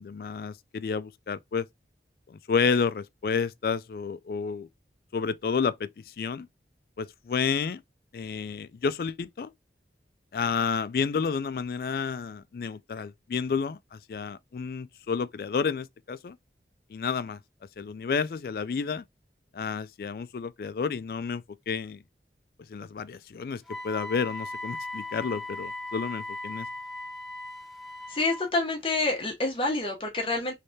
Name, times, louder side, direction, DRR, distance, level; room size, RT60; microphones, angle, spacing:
voice 1, 0.0-1.7 2.3-4.7 5.1-6.5 7.0-7.8 8.1-9.5 10.3-16.4 16.9-17.4 17.8-19.0 19.5-22.0 22.7-26.7, left 5 dB, 55° left, 0.3 m, -30 dB
Wind instrument woodwind instrument, 23.7-28.5, left 2 dB, ahead, 0.5 m, -38 dB
voice 2, 28.1-30.5, left 2 dB, 30° left, 0.9 m, -27 dB
3.3 x 3.2 x 2.7 m
head